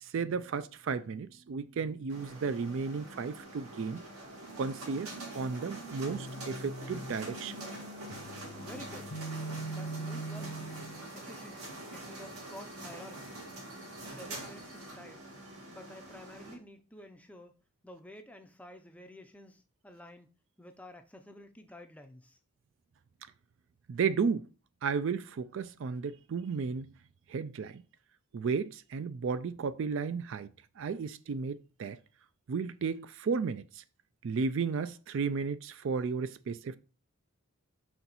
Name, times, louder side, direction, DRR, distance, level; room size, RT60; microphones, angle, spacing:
voice 1, 0.0-4.0 4.6-7.5 23.9-24.5 24.8-26.9 27.3-27.8 28.3-30.5 30.8-32.0 32.5-33.8 34.2-36.8, right 5 dB, 55° right, 0.3 m, -33 dB
sound 1, 2.1-16.5, right 1 dB, 80° right, 2.1 m, -45 dB
sound 2, 5.1-11.1, right 2 dB, 55° left, 0.6 m, -43 dB
voice 2, 8.5-9.1 9.7-10.6 11.1-13.4 14.0-15.2 15.7-17.6 17.8-20.3 20.6-22.4, left 1 dB, 5° left, 0.4 m, -51 dB
5.4 x 4.4 x 4.0 m
head